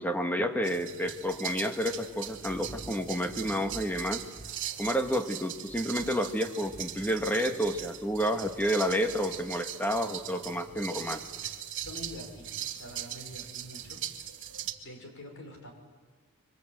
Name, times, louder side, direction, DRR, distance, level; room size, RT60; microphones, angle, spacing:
voice 1, 0.0-4.2 4.8-11.2, equal, 10° left, 6 dB, 1.5 m, -30 dB
sound 1, 0.6-14.7, right 9 dB, 60° right, 1.5 m, -40 dB
voice 2, 11.8-12.5 12.8-14.0 14.8-15.7, equal, 60° left, 3 dB, 5.7 m, -45 dB
26.5 x 24.0 x 7.9 m, 1.4 s
head